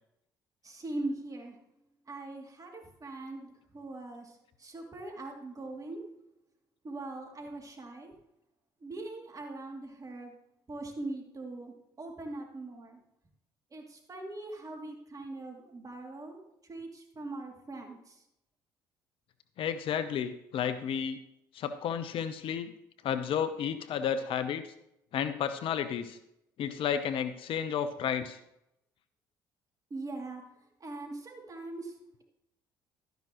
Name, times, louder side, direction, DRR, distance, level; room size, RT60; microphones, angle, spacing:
voice 1, 0.6-1.6 2.1-6.0 6.8-8.1 8.8-10.3 10.7-13.0 13.7-16.4 16.7-18.2 29.9-30.4 30.8-31.9, right 2 dB, 35° right, 2 dB, 2.9 m, -41 dB
voice 2, 19.6-21.2 21.5-22.7 23.0-24.6 25.1-26.2 26.6-28.4, left 8 dB, 65° left, 11 dB, 0.9 m, -32 dB
12.5 x 10.5 x 3.1 m, 0.82 s
hypercardioid pair, 60°, 10 cm